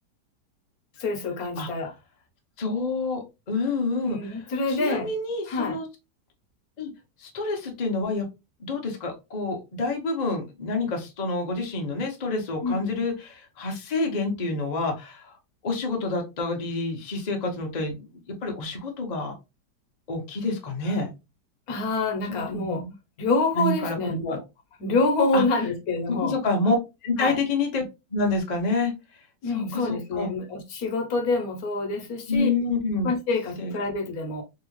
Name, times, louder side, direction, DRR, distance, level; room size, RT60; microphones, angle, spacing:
voice 1, 1.0-1.9 4.1-5.1 5.5-5.8 12.6-13.0 21.7-22.8 23.2-24.4 24.8-26.4 27.2-27.4 29.4-32.5 33.0-34.4, left 3 dB, 60° left, 1.1 m, -26 dB
voice 2, 2.6-4.2 4.7-5.9 6.8-6.9 7.2-8.2 8.7-15.4 15.6-18.1 18.4-19.3 20.1-21.1 22.3-22.9 23.5-24.0 24.3-24.4 25.3-25.4 26.1-26.8 27.0-27.8 28.1-28.9 29.5-30.3 32.3-33.1 33.6-33.7, left 3 dB, 40° left, 0.6 m, -28 dB
3.3 x 2.8 x 3.0 m
omnidirectional pair, 1.9 m